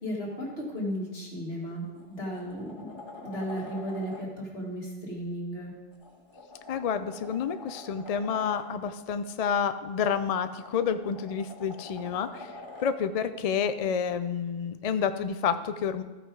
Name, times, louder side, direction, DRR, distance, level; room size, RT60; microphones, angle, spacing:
voice 1, 0.0-2.9 3.2-5.7, equal, 80° left, -3 dB, 2.5 m, -35 dB
sound 1, 1.4-1.5 2.0-4.2 5.9-8.6 10.1-12.9 15.2-15.3, left 2 dB, 25° left, 1.5 m, -46 dB
voice 2, 6.7-12.5 12.8-16.0, left 7 dB, 50° left, 10 dB, 0.5 m, -29 dB
14.0 x 5.6 x 4.7 m, 1.3 s
omnidirectional pair, 1.0 m